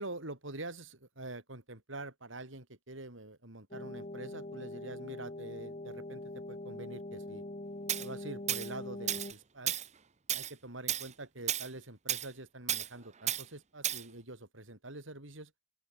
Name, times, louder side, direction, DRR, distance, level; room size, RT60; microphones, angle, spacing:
voice 1, 0.0-7.4 8.0-9.8 10.3-15.5, right 2 dB, 70° right, 4.5 m, -45 dB
sound 1, 3.7-9.3, left 1 dB, 35° left, 2.0 m, -43 dB
Tools, 7.9-8.1 8.5-8.7 9.1-9.3 9.7-9.9 10.3-10.5 10.9-11.1 11.5-11.7 12.1-12.3 12.7-12.9 13.3-13.4 13.8-14.0, right 11 dB, 35° right, 0.9 m, -33 dB
open air
head